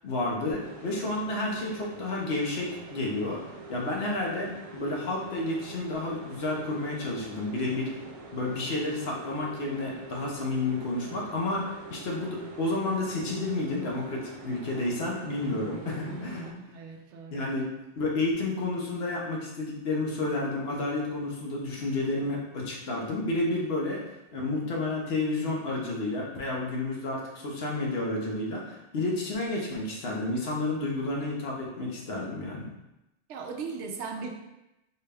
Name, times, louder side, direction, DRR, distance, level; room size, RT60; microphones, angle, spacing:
voice 1, 0.0-3.4 3.7-7.9 8.3-16.4 17.3-17.7 18.0-24.0 24.3-32.7, left 2 dB, 65° left, -2 dB, 1.0 m, -31 dB
sound 1, 0.6-16.5, right 3 dB, 55° right, 0.4 m, -45 dB
voice 2, 15.4-17.5 33.3-34.3, right 4 dB, 80° right, 2 dB, 0.9 m, -39 dB
4.3 x 2.2 x 3.4 m, 0.93 s
omnidirectional pair, 1.2 m